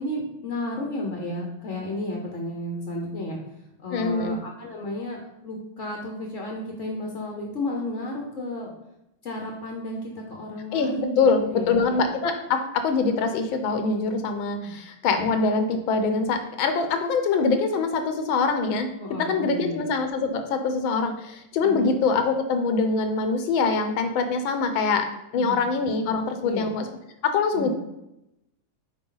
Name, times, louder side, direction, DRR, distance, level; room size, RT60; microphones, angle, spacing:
voice 1, 0.0-3.4 3.8-8.7 9.2-12.0 14.7-14.8 19.0-19.8 21.6-22.0 25.4-25.6 26.4-26.7 27.5-27.7, left 1 dB, 50° left, 0 dB, 1.0 m, -33 dB
voice 2, 3.9-4.4 10.7-18.9 19.2-25.1 25.3-26.9 27.2-27.7, left 4 dB, 75° left, 7 dB, 1.5 m, -24 dB
7.7 x 4.9 x 3.9 m, 0.87 s
omnidirectional pair, 2.2 m